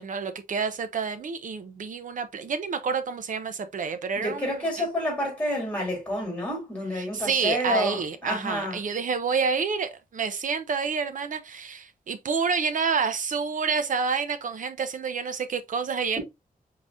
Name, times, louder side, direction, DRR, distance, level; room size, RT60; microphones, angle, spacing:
voice 1, 0.0-4.9 6.9-16.2, right 5 dB, 60° right, 0.7 m, -28 dB
voice 2, 4.2-8.8, left 1 dB, 10° left, 2.9 m, -29 dB
4.8 x 3.9 x 2.6 m
wide cardioid pair, 150°, 15 cm